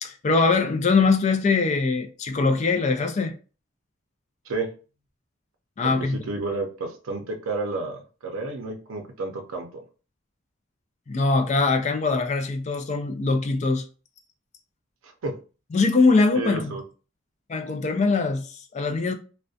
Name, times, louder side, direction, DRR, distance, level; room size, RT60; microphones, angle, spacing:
voice 1, 0.0-3.3 5.8-6.2 11.1-13.8 15.7-16.8 17.5-19.1, left 3 dB, 35° left, 0.3 m, -22 dB
voice 2, 5.8-9.8 15.2-15.3 16.3-16.8, right 3 dB, 85° right, 0.5 m, -31 dB
2.4 x 2.1 x 2.5 m
head